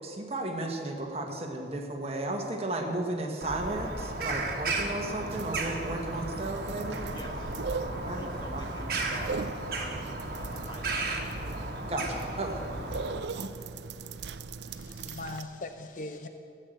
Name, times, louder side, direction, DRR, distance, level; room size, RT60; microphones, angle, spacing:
voice 1, 0.0-7.0 8.0-8.3 8.5-8.6 11.9-12.6, right 2 dB, 35° right, 2 dB, 1.4 m, -34 dB
Bird vocalization bird call bird song, 3.4-13.2, right 2 dB, 55° right, 1.6 m, -34 dB
sound 1, 5.3-15.4, right 4 dB, 80° right, 0.5 m, -40 dB
voice 2, 7.1-11.2 11.5-11.7 12.8-13.0 16.2-16.3, equal, 25° left, 0 dB, 1.8 m, -46 dB
voice 3, 14.7-16.3, left 2 dB, 45° left, 7 dB, 0.6 m, -40 dB
14.5 x 7.8 x 7.9 m, 2.5 s
head